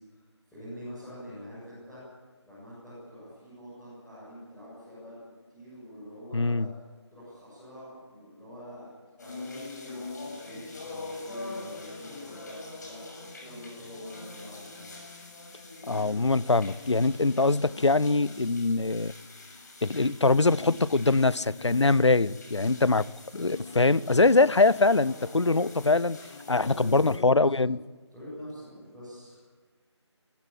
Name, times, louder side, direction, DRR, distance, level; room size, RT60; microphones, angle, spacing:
voice 1, 0.5-2.0 2.4-6.8 7.1-8.9 9.2-15.0 26.6-27.5 28.1-29.4, equal, 5° left, -13 dB, 8.0 m, -45 dB
voice 2, 6.3-6.7 15.9-19.1 19.8-23.0 23.3-26.2 26.5-27.8, left 3 dB, 75° left, 20 dB, 0.8 m, -23 dB
sound 1, 9.2-27.2, left 3 dB, 40° left, 6.7 m, -43 dB
25.5 x 15.5 x 8.9 m, 1.4 s
figure-of-eight pair, 160°, 15 cm